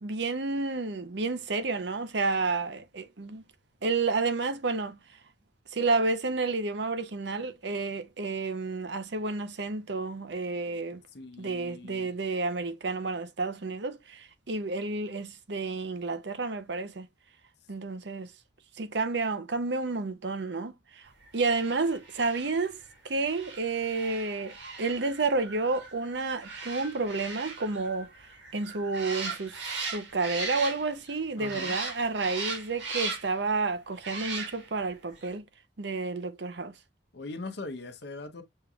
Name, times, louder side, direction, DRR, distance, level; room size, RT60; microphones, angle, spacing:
voice 1, 0.0-3.4 3.8-5.0 5.7-11.0 11.4-17.1 17.7-18.3 18.8-22.8 23.0-28.1 28.5-35.4 35.8-36.7, right 3 dB, 65° right, 0.7 m, -30 dB
voice 2, 11.1-12.1 31.4-31.8 37.1-38.4, left 3 dB, 60° left, 0.9 m, -41 dB
sound 1, 21.4-31.1 31.4-33.4 34.0-34.8 35.2-35.3, right 4 dB, 80° right, 2.5 m, -38 dB
6.5 x 3.3 x 2.3 m
head